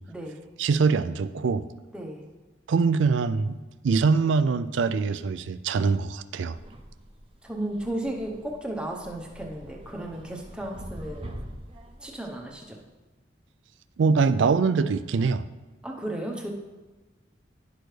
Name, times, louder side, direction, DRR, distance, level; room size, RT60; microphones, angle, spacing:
voice 1, 0.1-0.4 1.9-2.3 7.4-11.3 12.0-12.8 15.8-16.5, right 1 dB, 5° right, 0 dB, 0.8 m, -34 dB
voice 2, 0.6-1.7 2.7-3.6 3.8-6.6 14.0-15.5, right 4 dB, 75° right, 13 dB, 0.4 m, -23 dB
sound 1, 6.5-12.6, right 1 dB, 30° right, 0.6 m, -44 dB
10.5 x 6.1 x 3.3 m, 1.2 s
head